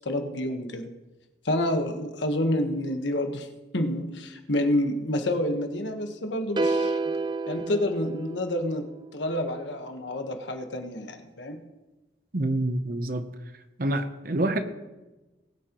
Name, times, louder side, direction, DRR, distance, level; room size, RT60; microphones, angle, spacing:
voice 1, 0.0-0.9 1.4-3.5 3.7-7.0 7.5-8.8 9.1-11.6, left 1 dB, 80° left, 5 dB, 1.3 m, -28 dB
sound 1, 6.6-8.9, right 3 dB, 25° right, 0.3 m, -29 dB
voice 2, 12.3-13.2 13.8-14.6, right 1 dB, 50° right, 9 dB, 0.8 m, -26 dB
20.0 x 8.9 x 3.1 m, 1.1 s
head